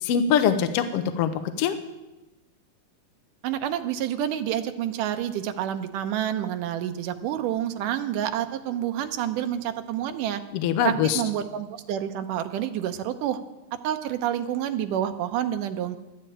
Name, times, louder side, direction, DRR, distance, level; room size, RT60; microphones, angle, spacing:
voice 1, 0.0-1.3 1.6-1.8 10.5-11.2, left 8 dB, 80° left, 9 dB, 1.3 m, -23 dB
voice 2, 3.4-10.4 10.8-13.4 13.8-16.0, right 10 dB, 90° right, 8 dB, 2.3 m, -28 dB
12.5 x 8.2 x 8.7 m, 1.0 s
omnidirectional pair, 3.7 m